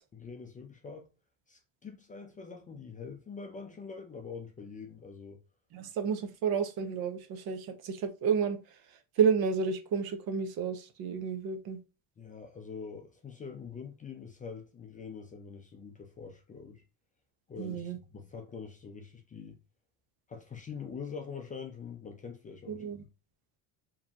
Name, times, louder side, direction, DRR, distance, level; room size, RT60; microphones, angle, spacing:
voice 1, 0.1-1.1 1.5-5.4 12.2-16.8 17.5-19.6 20.3-23.1, left 5 dB, 20° left, 0.4 m, -44 dB
voice 2, 5.7-8.6 9.2-11.8 17.6-18.0 22.7-23.0, right 6 dB, 55° right, 0.9 m, -31 dB
4.7 x 3.1 x 2.8 m
cardioid pair, 145°, 44 cm